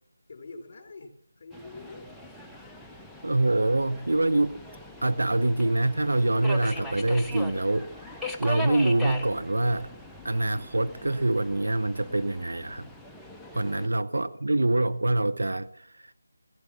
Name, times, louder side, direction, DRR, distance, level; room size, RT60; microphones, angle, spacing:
voice 1, 0.3-2.1 2.7-3.1 13.6-13.8, left 3 dB, 35° left, 3.4 m, -46 dB
Subway metro underground, 1.5-13.9, left 1 dB, ahead, 0.6 m, -40 dB
voice 2, 3.2-4.6 5.0-9.9 10.2-12.9 13.5-16.1, right 2 dB, 70° right, 0.7 m, -25 dB
16.0 x 11.5 x 6.1 m
figure-of-eight pair, 160°, 0 cm